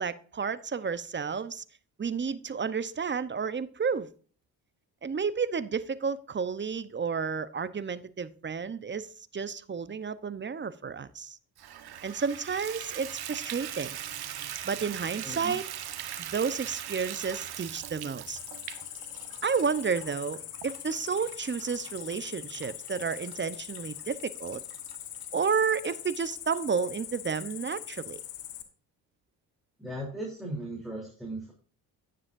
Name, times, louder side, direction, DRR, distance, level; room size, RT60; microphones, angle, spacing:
voice 1, 0.0-1.6 2.0-4.1 5.0-11.4 12.0-14.0 14.6-15.6 16.2-18.4 19.4-24.6 25.3-28.2, right 6 dB, 25° right, 0.9 m, -31 dB
Water tap faucet / Bathtub (filling or washing), 11.6-26.0 26.5-26.6 27.1-27.2 27.5-27.6, right 10 dB, 60° right, 1.3 m, -41 dB
voice 2, 15.2-15.5 29.8-31.5, right 1 dB, ahead, 3.4 m, -37 dB
Cricket, 18.3-28.6, left 12 dB, 90° left, 1.3 m, -42 dB
10.5 x 9.5 x 2.6 m
supercardioid pair, 65°, 42 cm